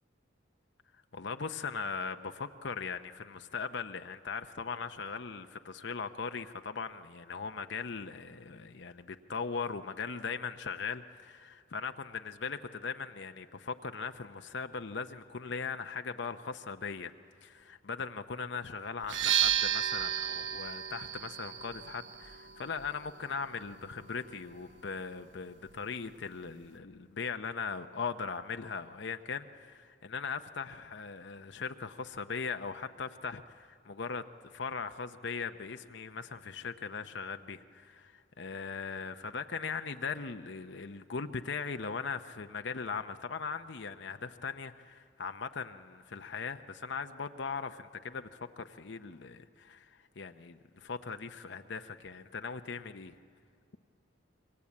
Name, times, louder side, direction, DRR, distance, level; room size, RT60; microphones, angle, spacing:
voice 1, 1.1-17.1 17.4-53.1, left 5 dB, 65° left, 7 dB, 0.7 m, -39 dB
sound 1, 19.0-26.8, right 10 dB, 65° right, 0.8 m, -35 dB
26.5 x 23.5 x 8.5 m, 2.4 s
head